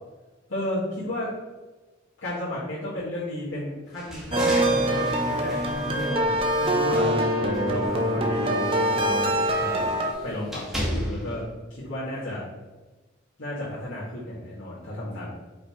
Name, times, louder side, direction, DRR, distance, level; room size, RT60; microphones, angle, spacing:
voice 1, 0.5-1.3 2.2-7.2 7.7-9.9 10.2-11.4 11.7-12.5 13.4-15.3, left 1 dB, 90° left, -11 dB, 1.9 m, -33 dB
sound 1, 3.9-7.1 7.5-11.4, equal, ahead, 1.0 m, -37 dB
sound 2, 4.3-10.1, right 1 dB, 30° right, 0.7 m, -24 dB
5.4 x 4.0 x 4.3 m, 1.2 s
head